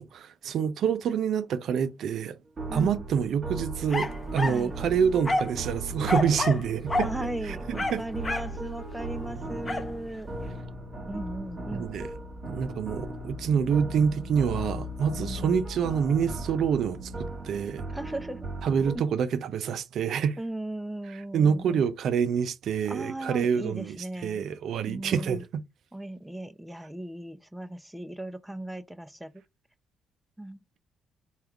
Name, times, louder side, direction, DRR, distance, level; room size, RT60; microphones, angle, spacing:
voice 1, 0.0-2.4 2.7-8.0 11.7-12.1 12.5-17.9 18.6-20.4 21.1-25.6, right 7 dB, 70° right, 0.4 m, -27 dB
sound 1, 2.6-19.0, right 1 dB, 40° right, 1.3 m, -37 dB
voice 2, 2.7-3.0 4.4-4.7 7.0-10.3 11.1-11.9 15.2-15.7 17.9-18.5 18.9-19.0 20.4-21.8 22.9-24.4 24.9-25.4 25.9-29.3 30.4-30.6, right 1 dB, 5° right, 0.5 m, -37 dB
sound 2, 3.9-4.6 5.2-5.6 6.1-6.6 6.9-7.1 7.7-8.5 9.7-9.9, left 2 dB, 25° left, 0.8 m, -29 dB
3.5 x 2.4 x 4.4 m
cardioid pair, 90°, 0 cm